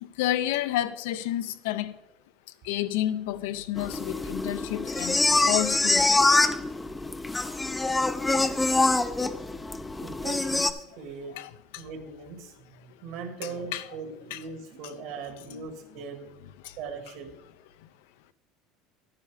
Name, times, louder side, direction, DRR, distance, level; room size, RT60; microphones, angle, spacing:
voice 1, 0.0-1.9 2.6-5.2 5.5-6.4 11.4-11.8 13.4-13.8 14.3-14.4 16.6-16.7, left 13 dB, 90° left, 0.5 m, -30 dB
sound 1, 3.8-10.7, left 2 dB, 10° left, 0.4 m, -25 dB
voice 2, 10.0-11.4 11.8-16.3 16.8-17.3, right 4 dB, 60° right, 1.6 m, -40 dB
11.0 x 9.7 x 3.3 m
cardioid pair, 155°, 0 cm